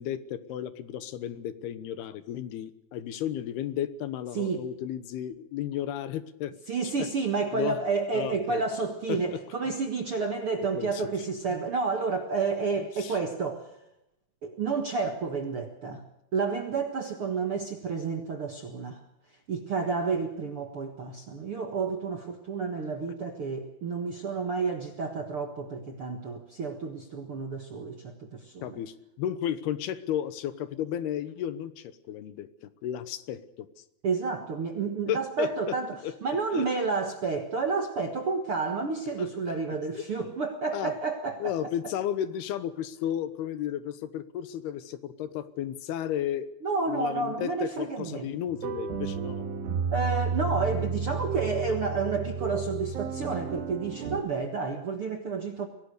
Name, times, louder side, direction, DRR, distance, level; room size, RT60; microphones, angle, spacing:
voice 1, 0.0-6.5 7.5-7.8 8.1-8.6 9.1-9.4 10.8-11.0 13.0-13.2 28.6-33.7 35.1-35.5 36.0-36.1 36.5-36.7 39.2-39.3 39.9-40.0 40.7-40.9 41.4-46.5 46.9-49.5, left 10 dB, 75° left, 13 dB, 2.9 m, -33 dB
voice 2, 4.3-4.7 6.7-13.7 14.4-16.0 16.3-19.0 19.5-28.8 34.0-41.7 46.6-48.3 49.9-55.7, right 4 dB, 55° right, 5 dB, 1.5 m, -30 dB
sound 1, 48.5-54.2, right 5 dB, 75° right, 3.9 m, -32 dB
24.0 x 18.0 x 6.6 m, 0.85 s
omnidirectional pair, 4.7 m